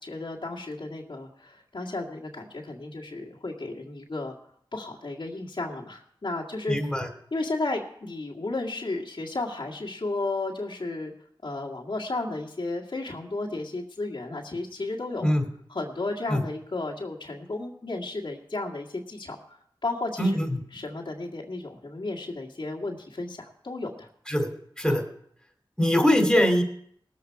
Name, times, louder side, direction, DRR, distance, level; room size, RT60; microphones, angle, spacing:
voice 1, 0.0-4.4 4.7-6.8 7.3-11.1 11.4-15.3 15.7-19.4 19.8-20.3 20.7-24.1 24.9-25.0, left 2 dB, 65° left, -3 dB, 2.0 m, -33 dB
voice 2, 6.7-7.1 15.2-15.5 16.3-16.4 20.2-20.6 24.3-24.5 24.8-25.0 25.8-26.6, equal, 5° left, 3 dB, 2.9 m, -22 dB
19.5 x 7.6 x 4.7 m, 0.66 s
wide cardioid pair, 45°, 9 cm